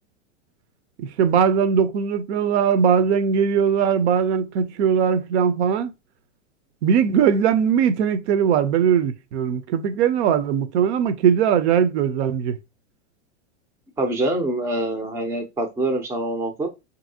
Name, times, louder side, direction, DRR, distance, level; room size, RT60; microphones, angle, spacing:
voice 1, 1.0-5.9 6.8-12.6, right 7 dB, 65° right, 0.6 m, -20 dB
voice 2, 14.0-16.7, right 1 dB, 10° right, 0.4 m, -25 dB
2.8 x 2.7 x 2.6 m
supercardioid pair, 130°, 36 cm